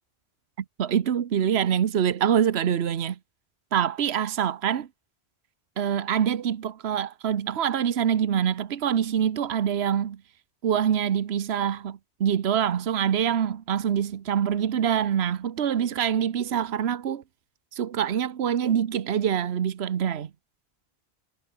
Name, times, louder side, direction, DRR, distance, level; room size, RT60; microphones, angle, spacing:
voice 1, 0.8-3.2 3.7-4.9 5.8-10.2 10.6-17.2 17.7-20.3, right 9 dB, 75° right, 1.2 m, -25 dB
omnidirectional pair, 1.1 m